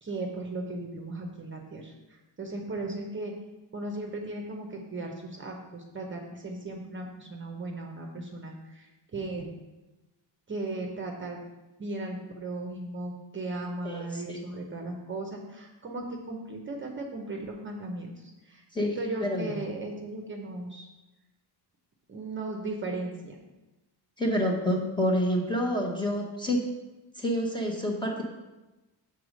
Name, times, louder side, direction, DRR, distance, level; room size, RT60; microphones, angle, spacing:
voice 1, 0.0-3.3 3.7-9.5 10.5-11.4 11.8-20.9 22.1-23.4, right 2 dB, 30° right, 1 dB, 0.8 m, -37 dB
voice 2, 13.8-14.4 18.7-18.9 19.2-19.6 24.2-26.6 27.2-28.2, equal, 10° left, -1 dB, 0.9 m, -28 dB
6.6 x 4.0 x 6.3 m, 1.1 s
wide cardioid pair, 170°, 43 cm